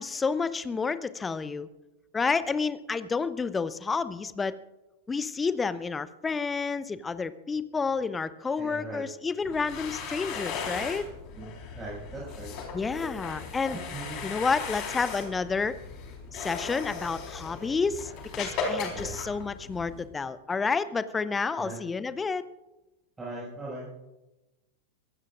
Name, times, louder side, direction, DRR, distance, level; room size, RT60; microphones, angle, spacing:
voice 1, 0.0-1.7 2.1-4.5 5.1-11.1 12.7-13.8 14.2-15.8 16.3-22.4, left 4 dB, 15° left, 15 dB, 0.7 m, -30 dB
voice 2, 8.6-9.0 11.4-11.5 11.7-12.5 13.7-14.2 18.9-19.2 21.6-21.8 23.2-23.9, right 2 dB, 10° right, -7 dB, 6.1 m, -39 dB
sound 1, 9.4-20.0, left 5 dB, 40° left, 4.1 m, -37 dB
23.5 x 19.0 x 2.5 m, 1.0 s
figure-of-eight pair, 90°, 0 cm